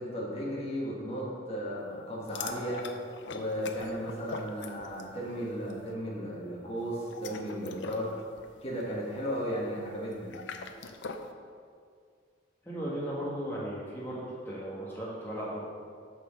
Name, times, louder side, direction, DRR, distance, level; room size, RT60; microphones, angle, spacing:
voice 1, 0.0-2.9 3.3-8.1 8.6-10.3, equal, 35° left, -4 dB, 1.6 m, -35 dB
sound 1, 2.3-5.2 5.5-5.8 6.9-11.3, left 4 dB, 80° left, 0.6 m, -43 dB
voice 2, 12.6-15.6, right 1 dB, 10° left, -7 dB, 1.5 m, -36 dB
9.0 x 4.4 x 6.3 m, 2.1 s
head